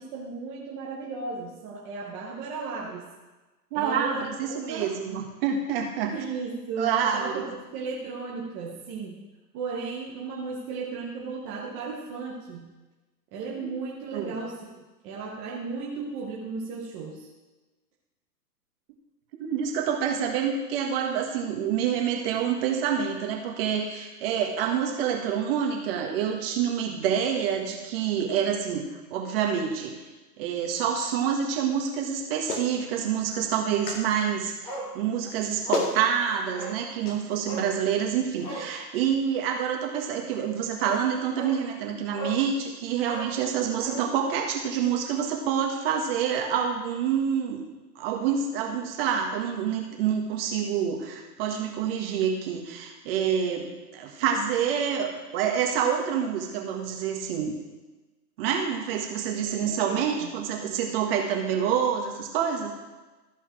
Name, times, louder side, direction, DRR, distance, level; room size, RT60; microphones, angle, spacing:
voice 1, 0.0-3.1 3.7-4.9 6.0-9.2 9.5-12.7 13.3-17.3 59.2-60.3, right 4 dB, 15° right, -4 dB, 0.5 m, -35 dB
voice 2, 3.7-6.1 6.8-7.5 13.6-13.7 14.1-14.3 19.4-28.8 29.1-29.9 30.4-47.6 48.0-57.5 58.4-62.7, right 8 dB, 35° right, 2 dB, 1.6 m, -27 dB
Clapping, 32.5-32.7 33.9-34.0 35.3-35.4 35.7-36.0 37.0-37.2, left 3 dB, 70° left, 2.0 m, -29 dB
Bark, 34.6-34.9 35.2-35.3 35.6-35.9 36.5-36.8 37.4-37.7 38.4-38.7 40.3-40.4 40.8-41.0 41.3-41.6 42.1-42.4 43.0-44.0 44.3-44.4, right 1 dB, 10° left, 2.2 m, -36 dB
13.5 x 5.4 x 4.9 m, 1.2 s
hypercardioid pair, 145°, 49 cm